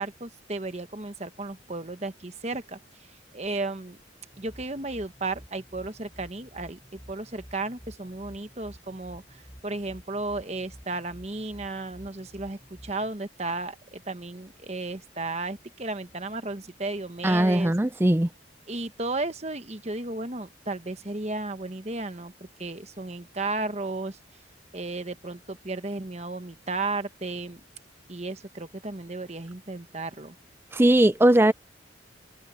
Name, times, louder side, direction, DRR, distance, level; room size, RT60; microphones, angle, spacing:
voice 1, 0.0-2.8 3.3-4.0 4.4-9.2 9.6-17.7 18.7-22.3 22.6-24.2 24.7-27.6 28.1-30.4, right 2 dB, 35° right, 1.2 m, -34 dB
sound 1, 4.3-13.1, equal, 5° left, 6.3 m, -50 dB
voice 2, 17.2-18.3 30.7-31.5, right 1 dB, 10° right, 0.4 m, -19 dB
head